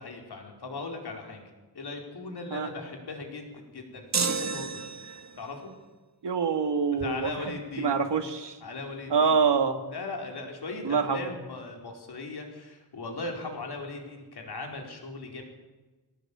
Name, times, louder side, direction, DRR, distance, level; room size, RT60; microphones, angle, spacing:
voice 1, 0.0-1.4 1.7-4.8 5.4-5.7 7.0-7.9 8.6-9.4 9.9-15.4, left 3 dB, 70° left, 3 dB, 4.8 m, -38 dB
sound 1, 4.1-5.4, right 5 dB, 40° right, 1.6 m, -30 dB
voice 2, 6.2-7.3 7.8-8.6 9.1-9.8 10.8-11.3, right 5 dB, 90° right, 5 dB, 2.1 m, -25 dB
22.5 x 18.0 x 8.8 m, 1.2 s
wide cardioid pair, 160°, 40 cm